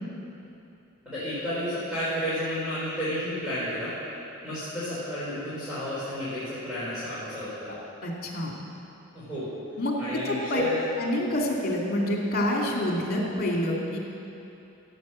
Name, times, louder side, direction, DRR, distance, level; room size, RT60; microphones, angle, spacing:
voice 1, 1.1-3.9 4.4-7.7 9.1-9.5 10.0-10.7, equal, 5° right, -13 dB, 3.9 m, -31 dB
voice 2, 8.0-8.6 9.8-10.6 11.0-14.0, left 1 dB, 45° left, -2 dB, 2.6 m, -27 dB
15.5 x 8.0 x 7.5 m, 2.8 s
head